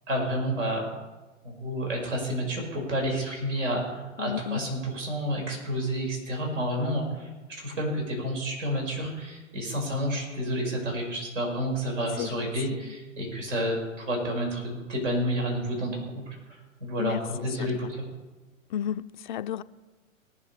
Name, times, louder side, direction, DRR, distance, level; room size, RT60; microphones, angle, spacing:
voice 1, 0.1-0.9 1.4-18.0, equal, 65° right, 5.5 m, -30 dB
voice 2, 4.2-4.6 12.2-12.3 17.0-17.2 17.6-17.7 18.7-19.6, left 10 dB, 40° left, 0.4 m, -31 dB
19.5 x 7.3 x 6.7 m
figure-of-eight pair, 110°, 40 cm